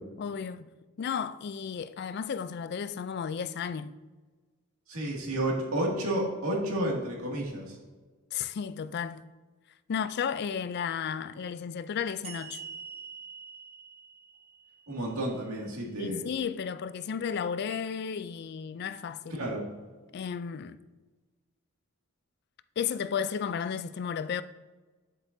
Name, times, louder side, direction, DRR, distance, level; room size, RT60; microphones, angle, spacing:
voice 1, 0.2-0.7 1.0-3.9 8.3-9.3 9.9-12.6 16.0-19.4 20.1-20.8 22.8-24.4, left 7 dB, 50° left, 0.3 m, -33 dB
voice 2, 4.9-7.8 14.9-16.2 19.3-19.6, right 1 dB, 85° right, 2.2 m, -31 dB
sound 1, 12.2-15.6, right 6 dB, 30° right, 0.8 m, -46 dB
9.4 x 7.9 x 2.7 m
head